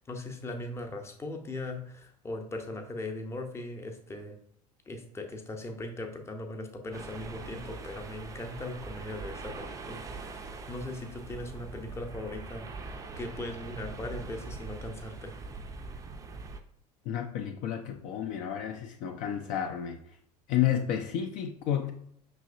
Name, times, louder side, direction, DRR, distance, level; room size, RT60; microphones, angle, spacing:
voice 1, 0.0-4.4 4.9-10.1 10.3-12.7 13.2-15.3, left 2 dB, 15° left, 3 dB, 0.7 m, -39 dB
sound 1, 6.9-16.6, right 3 dB, 15° right, 0.5 m, -42 dB
voice 2, 17.0-20.2 20.5-21.9, left 10 dB, 45° left, 4 dB, 0.5 m, -31 dB
5.5 x 3.2 x 2.5 m, 0.68 s
figure-of-eight pair, 70°, 20 cm